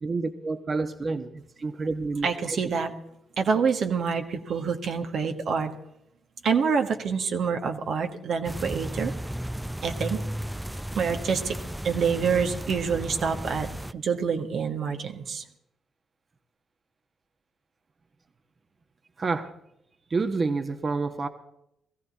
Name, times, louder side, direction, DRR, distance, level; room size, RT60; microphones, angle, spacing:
voice 1, 0.0-2.6 19.2-19.5 20.1-21.3, right 3 dB, 40° right, 8 dB, 1.4 m, -29 dB
voice 2, 2.2-2.9 3.4-5.7 6.4-9.1 9.8-10.2 10.9-11.6 11.8-15.4, right 6 dB, 65° right, 4 dB, 1.4 m, -27 dB
sound 1, 8.4-13.9, right 1 dB, 5° right, 0.5 m, -34 dB
18.5 x 15.0 x 4.2 m, 0.79 s
hypercardioid pair, 45°, 0 cm